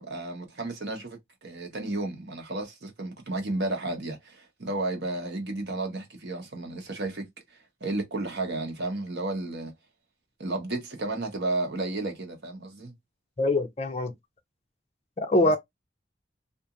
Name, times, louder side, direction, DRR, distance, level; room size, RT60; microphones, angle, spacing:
voice 1, 0.0-7.3 7.8-9.7 10.4-12.9 15.4-15.6, right 2 dB, 70° right, 1.0 m, -32 dB
voice 2, 13.4-14.1 15.2-15.6, left 2 dB, 35° left, 0.5 m, -23 dB
2.8 x 2.5 x 2.4 m
head